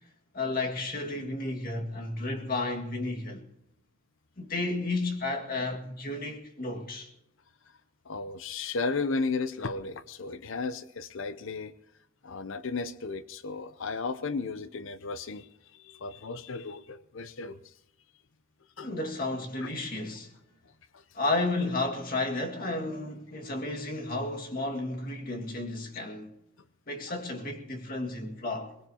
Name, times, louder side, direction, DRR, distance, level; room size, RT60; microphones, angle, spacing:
voice 1, 0.3-3.4 4.4-7.1 18.8-20.3 21.1-26.3 26.9-28.7, left 2 dB, 45° left, 2.0 m, -32 dB
voice 2, 8.1-11.7 12.2-17.7 18.8-18.9 19.6-19.7 20.9-21.0, left 4 dB, 65° left, 0.6 m, -34 dB
22.5 x 20.0 x 2.9 m
head